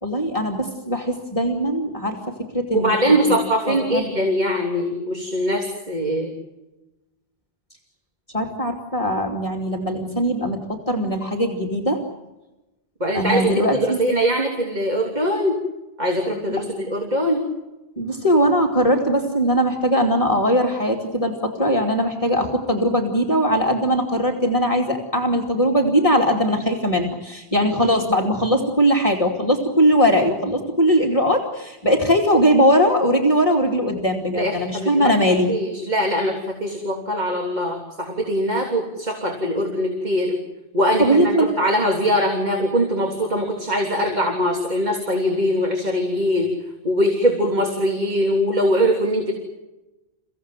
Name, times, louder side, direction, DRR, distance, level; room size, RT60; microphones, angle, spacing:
voice 1, 0.0-2.9 3.3-3.4 3.6-4.2 8.3-12.0 13.1-14.0 18.0-35.5 41.0-41.5, equal, 35° left, 0 dB, 2.7 m, -20 dB
voice 2, 2.7-6.3 13.0-15.6 16.0-17.5 34.3-35.1 35.5-40.4 40.7-46.5 46.8-49.3, equal, 45° right, 1 dB, 3.5 m, -22 dB
29.5 x 16.5 x 9.1 m, 1.0 s
omnidirectional pair, 1.0 m